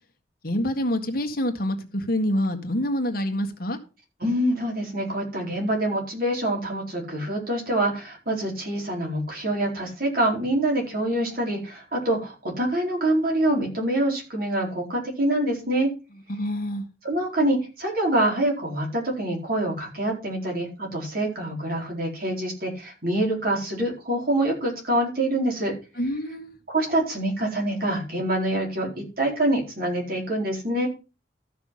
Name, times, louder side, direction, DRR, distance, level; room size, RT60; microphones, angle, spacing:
voice 1, 0.4-3.8 16.3-16.9 26.0-26.6, left 1 dB, 55° left, 6 dB, 1.7 m, -26 dB
voice 2, 4.2-15.9 17.0-25.7 26.7-30.9, right 1 dB, 50° right, -1 dB, 4.5 m, -25 dB
13.5 x 6.0 x 5.6 m, 0.32 s
head